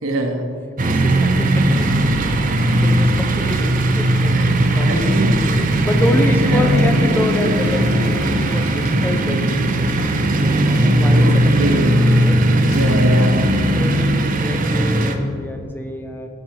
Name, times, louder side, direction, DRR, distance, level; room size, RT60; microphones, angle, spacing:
voice 1, 0.0-0.4 4.3-5.3 6.5-6.7 11.1-12.0 12.7-13.5, right 1 dB, 80° right, 3 dB, 1.2 m, -23 dB
voice 2, 0.8-1.9 2.8-5.3 5.8-9.6 10.4-12.4 13.7-16.3, left 1 dB, 10° left, 4 dB, 0.7 m, -26 dB
sound 1, 0.8-15.2, right 1 dB, 45° right, 0.8 m, -17 dB
Gurgling, 2.3-5.0 5.7-9.3 9.9-11.4 12.1-12.2 12.6-13.2, equal, 55° left, 1.5 m, -32 dB
16.0 x 6.0 x 4.8 m, 2.4 s
head